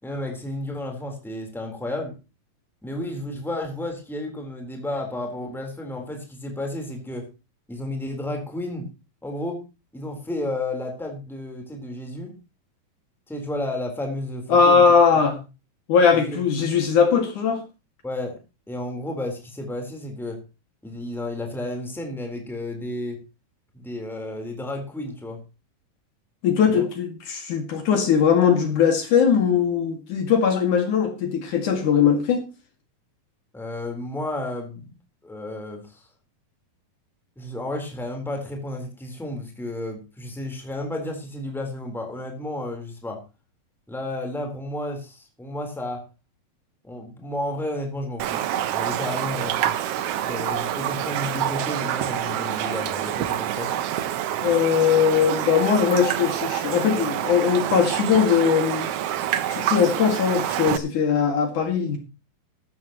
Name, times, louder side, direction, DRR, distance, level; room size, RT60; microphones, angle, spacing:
voice 1, 0.0-2.1 2.8-7.3 7.7-8.9 9.2-9.6 9.9-12.4 13.3-14.8 15.3-15.4 16.1-16.4 18.0-18.4 18.7-20.4 20.8-23.2 23.7-25.4 26.6-26.8 33.5-34.9 35.2-36.1 37.4-43.2 43.9-46.0 46.8-48.4 48.7-49.8 50.2-53.7, left 1 dB, ahead, 2 dB, 3.6 m, -32 dB
voice 2, 14.5-15.4 15.9-17.6 26.4-32.4 54.4-58.9 59.5-62.0, left 6 dB, 65° left, 5 dB, 3.6 m, -20 dB
Raindrop, 48.2-60.8, right 11 dB, 80° right, 1.3 m, -27 dB
14.0 x 13.0 x 3.1 m, 0.29 s
omnidirectional pair, 3.9 m